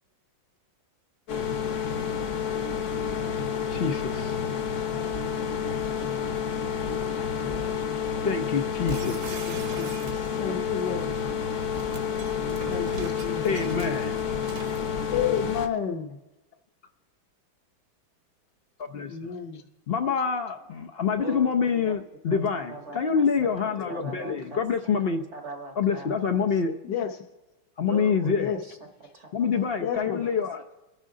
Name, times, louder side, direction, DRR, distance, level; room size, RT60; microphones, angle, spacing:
sound 1, 1.3-15.7, left 7 dB, 50° left, 1.1 m, -29 dB
voice 1, 2.0-2.9 3.2-4.0 8.9-10.4 21.2-22.0 22.3-24.9 25.3-26.7 27.9-28.8 29.1-29.6 29.9-30.3, right 2 dB, 50° right, 0.9 m, -43 dB
voice 2, 3.7-4.4 7.4-7.8 8.2-9.5 13.4-14.3 18.8-19.3 19.9-25.2 25.8-26.8 27.8-28.5 29.3-30.7, left 6 dB, 85° left, 0.5 m, -27 dB
sound 2, 8.9-10.6 11.6-14.9, right 5 dB, 75° right, 1.8 m, -41 dB
voice 3, 9.0-10.0 10.4-11.1 12.7-13.6 15.1-16.2 19.1-19.6 26.8-27.2 28.4-28.6 29.8-30.2, left 8 dB, 65° left, 1.5 m, -31 dB
25.0 x 10.5 x 3.7 m
omnidirectional pair, 2.1 m